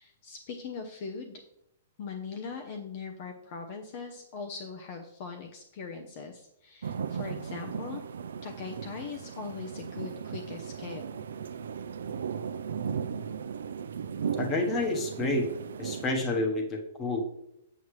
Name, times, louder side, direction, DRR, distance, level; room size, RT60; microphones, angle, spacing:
voice 1, 0.0-1.4 2.0-8.0 8.4-11.0, left 5 dB, 45° left, 4 dB, 0.8 m, -40 dB
sound 1, 6.8-16.1, right 7 dB, 85° right, 0.5 m, -36 dB
voice 2, 14.4-15.5 15.8-17.2, left 2 dB, 20° left, 3 dB, 1.2 m, -29 dB
7.9 x 7.2 x 3.2 m, 0.78 s
hypercardioid pair, 160°, 0 cm